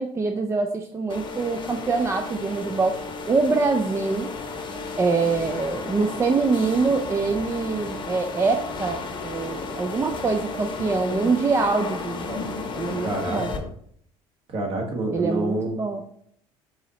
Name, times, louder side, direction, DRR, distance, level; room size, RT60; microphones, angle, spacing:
voice 1, 0.0-3.0 3.3-4.3 5.0-12.5 12.7-13.6 15.1-16.0, right 4 dB, 20° right, 4 dB, 0.4 m, -24 dB
sound 1, 1.1-13.6, left 4 dB, 35° left, 0.8 m, -33 dB
voice 2, 13.0-13.6 14.5-15.8, right 2 dB, 45° right, 1 dB, 1.3 m, -28 dB
4.8 x 2.8 x 4.0 m, 0.66 s
supercardioid pair, 95°, 13 cm